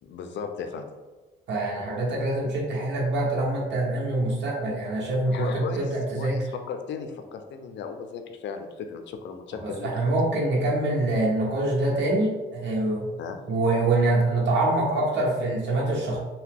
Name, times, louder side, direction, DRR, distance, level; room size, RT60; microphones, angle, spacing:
voice 1, 0.0-0.9 5.3-5.8 6.2-9.9 13.2-13.4, left 6 dB, 65° left, 6 dB, 0.4 m, -35 dB
voice 2, 1.5-6.4 9.6-13.1 13.5-16.2, right 2 dB, 65° right, -5 dB, 0.9 m, -25 dB
2.8 x 2.1 x 3.6 m, 1.2 s
cardioid pair, 90°, 20 cm